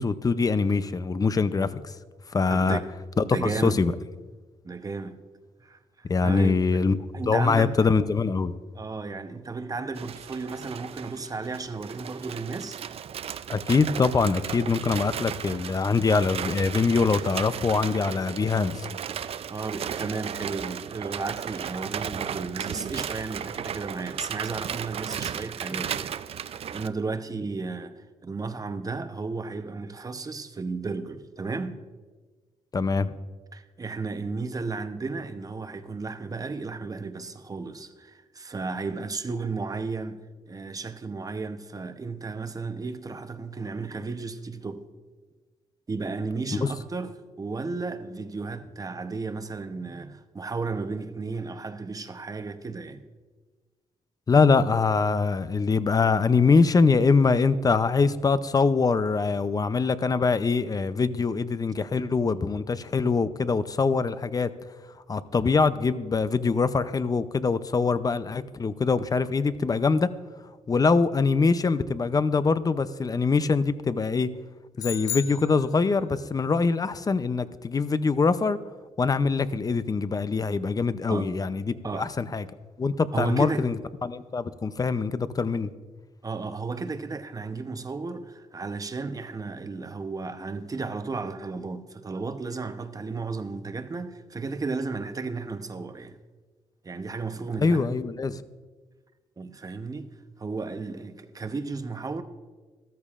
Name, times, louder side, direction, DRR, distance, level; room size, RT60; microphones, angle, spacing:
voice 1, 0.0-2.0 2.3-2.8 3.2-3.9 6.1-7.0 7.3-8.5 13.5-18.9 32.7-33.2 46.5-46.7 54.3-64.5 65.1-70.1 70.7-74.3 74.8-78.6 79.0-82.4 82.8-83.8 84.0-85.7 97.6-98.4, left 4 dB, 30° left, 0.5 m, -23 dB
voice 2, 2.5-2.9 3.3-3.8 4.6-5.2 5.6-6.5 7.1-7.7 8.7-12.8 18.8-19.0 19.5-31.8 33.5-44.8 45.9-53.0 81.1-81.3 81.8-82.1 83.1-83.7 86.2-96.2 96.8-97.9 99.4-100.1 100.4-102.2, right 4 dB, 30° right, 0.8 m, -34 dB
sound 1, 10.0-26.9, right 8 dB, 50° right, 0.4 m, -35 dB
sound 2, 74.8-76.2, left 9 dB, 80° left, 0.7 m, -35 dB
13.5 x 13.0 x 2.5 m
cardioid pair, 85°, 13 cm